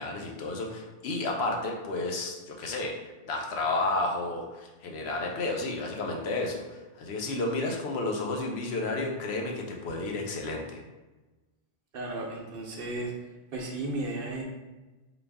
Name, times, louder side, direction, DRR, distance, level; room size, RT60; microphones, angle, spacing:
voice 1, 0.0-10.8, left 2 dB, 75° left, 1 dB, 0.9 m, -32 dB
voice 2, 11.9-13.1 13.5-14.4, right 2 dB, 60° right, 0 dB, 0.8 m, -34 dB
4.0 x 2.4 x 3.4 m, 1.1 s
omnidirectional pair, 1.1 m